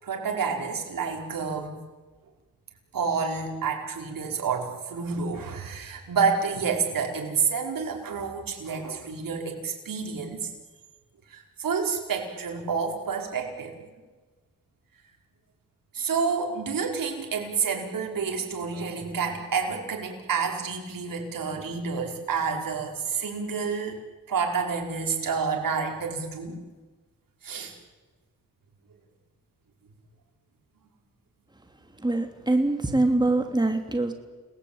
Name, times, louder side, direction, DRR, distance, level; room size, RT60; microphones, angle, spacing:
voice 1, 0.0-1.8 2.9-10.5 11.3-13.7 15.9-24.0 24.3-26.6 27.4-27.7, right 5 dB, 70° right, 1 dB, 5.3 m, -29 dB
voice 2, 32.0-34.1, right 2 dB, 10° right, 5 dB, 3.1 m, -24 dB
29.5 x 19.5 x 8.9 m, 1.3 s
cardioid pair, 75°, 35 cm